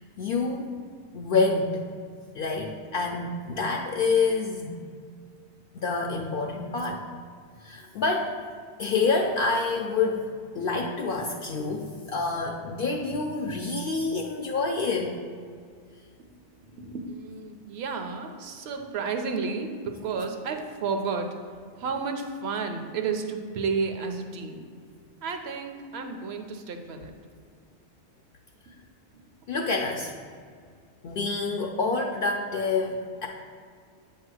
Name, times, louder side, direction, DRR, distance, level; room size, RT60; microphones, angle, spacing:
voice 1, 0.2-0.8 1.1-1.8 2.3-4.8 5.7-7.0 7.6-8.4 8.8-15.2 29.5-30.1 31.0-33.3, left 4 dB, 60° left, 1 dB, 0.6 m, -27 dB
voice 2, 16.6-21.3 21.8-24.6 25.2-27.1, right 5 dB, 65° right, 5 dB, 0.9 m, -32 dB
8.2 x 2.9 x 6.1 m, 2.1 s
omnidirectional pair, 1.2 m